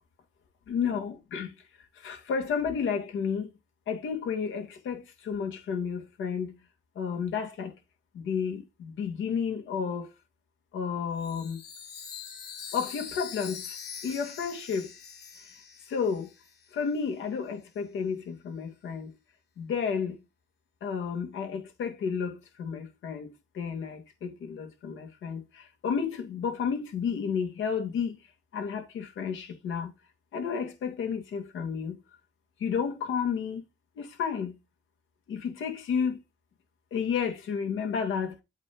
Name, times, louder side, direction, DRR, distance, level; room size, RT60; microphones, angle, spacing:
voice 1, 0.7-1.5 2.0-3.5 3.9-6.5 7.0-7.7 8.2-10.1 10.7-11.6 12.7-13.6 14.0-14.9 15.9-16.3 16.8-19.1 19.6-20.1 20.8-23.3 23.6-25.4 25.8-28.1 28.5-29.9 30.3-31.9 32.6-33.6 34.0-34.5 35.3-36.2 36.9-38.3, left 6 dB, 80° left, 2.3 m, -31 dB
Chime, 11.1-16.7, left 6 dB, 55° left, 3.1 m, -43 dB
8.1 x 3.2 x 5.4 m
cardioid pair, 90°, 20 cm